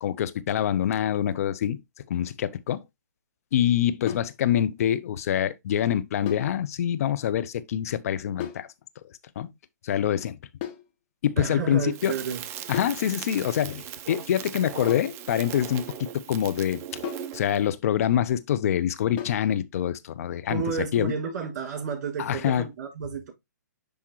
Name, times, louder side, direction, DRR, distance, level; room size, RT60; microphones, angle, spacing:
voice 1, 0.0-1.8 2.1-2.8 3.5-8.7 9.4-9.5 9.8-10.4 11.2-12.1 12.7-16.8 17.3-20.6 20.9-21.1 22.2-22.7, left 10 dB, 55° left, 0.7 m, -25 dB
sound 1, 4.1-4.4 6.3-6.6 8.4-8.7 10.6-10.9 12.7-13.0 14.9-15.2 17.0-17.4 19.2-19.5, left 11 dB, 35° left, 1.2 m, -35 dB
voice 2, 11.4-12.4 20.5-23.3, right 6 dB, 50° right, 5.2 m, -31 dB
Crackle, 11.9-17.6, right 10 dB, 25° right, 0.5 m, -39 dB
10.5 x 3.5 x 3.0 m
hypercardioid pair, 135°, 10 cm